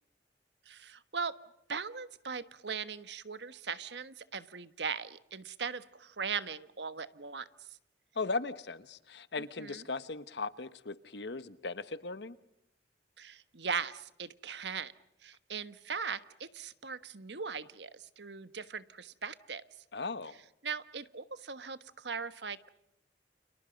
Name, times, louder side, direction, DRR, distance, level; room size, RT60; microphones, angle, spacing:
voice 1, 0.7-1.4 1.7-7.4 9.6-9.8 13.2-14.9 15.2-19.6 20.6-22.7, right 5 dB, 85° right, 1.3 m, -39 dB
voice 2, 8.2-12.4 19.9-20.3, left 3 dB, 80° left, 1.2 m, -38 dB
30.0 x 29.5 x 5.3 m
head